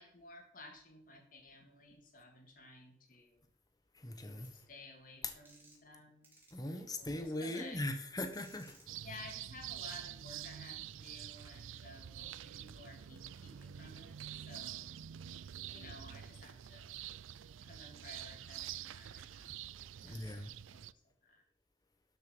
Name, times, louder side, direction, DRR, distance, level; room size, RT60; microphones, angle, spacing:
voice 1, 0.0-3.4 4.5-7.8 9.0-14.9 15.7-16.9 17.6-19.6 20.0-20.5 20.7-21.4, left 2 dB, 45° left, 2.7 m, -55 dB
voice 2, 4.0-4.5 5.2-5.3 6.5-8.8 20.0-20.5, left 1 dB, 20° left, 1.2 m, -39 dB
sound 1, 4.4-4.5 5.5-5.9 6.2-6.5 7.5-7.6 8.3-8.8 9.8-9.9, right 2 dB, 10° right, 3.8 m, -61 dB
sound 2, 8.9-20.9, right 11 dB, 90° right, 0.4 m, -47 dB
12.0 x 6.5 x 6.2 m
head